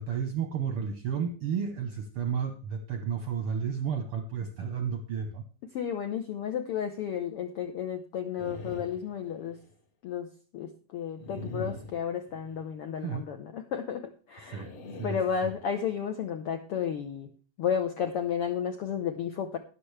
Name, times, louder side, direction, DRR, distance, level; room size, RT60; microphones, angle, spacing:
voice 1, 0.0-5.4 13.0-13.2 14.5-14.7 15.0-15.2 15.4-15.5, right 7 dB, 65° right, 7 dB, 1.4 m, -32 dB
voice 2, 5.7-9.6 10.0-10.3 10.5-14.7 15.0-17.3 17.6-19.6, left 8 dB, 75° left, 6 dB, 1.3 m, -32 dB
sound 1, 8.4-9.7 11.2-12.7 14.4-16.0, left 2 dB, 55° left, 2.6 m, -43 dB
13.0 x 10.5 x 3.3 m, 0.38 s
omnidirectional pair, 3.7 m